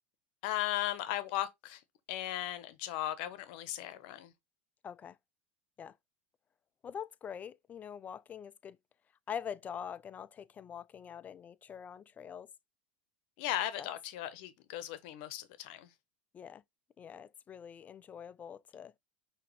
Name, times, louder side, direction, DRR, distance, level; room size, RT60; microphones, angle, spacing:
voice 1, 0.4-1.8 2.1-4.3 13.4-15.9, left 13 dB, 65° left, 0.8 m, -37 dB
voice 2, 4.8-5.2 5.8-5.9 6.8-8.8 9.3-12.5 13.8-13.9 16.3-16.6 17.0-18.9, left 8 dB, 25° left, 0.4 m, -44 dB
5.8 x 2.8 x 3.1 m
supercardioid pair, 105°, 6 cm